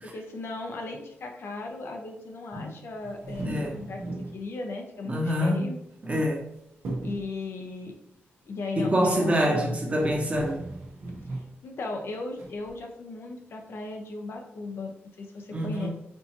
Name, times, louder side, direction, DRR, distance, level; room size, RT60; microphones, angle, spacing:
voice 1, 0.1-4.0 4.3-5.8 7.0-7.9 8.5-9.7 11.6-14.9 15.2-15.9, left 3 dB, 70° left, 0.7 m, -36 dB
sound 1, 3.0-4.4 5.9-6.5 6.8-7.3 9.4-9.5 9.9-11.5 12.4-12.7, right 2 dB, 85° right, 1.1 m, -37 dB
voice 2, 3.4-3.8 5.1-5.7 6.0-6.5 8.8-10.6 15.5-15.9, equal, 30° right, 1.0 m, -25 dB
4.5 x 2.7 x 2.8 m
cardioid pair, 75°, 4 cm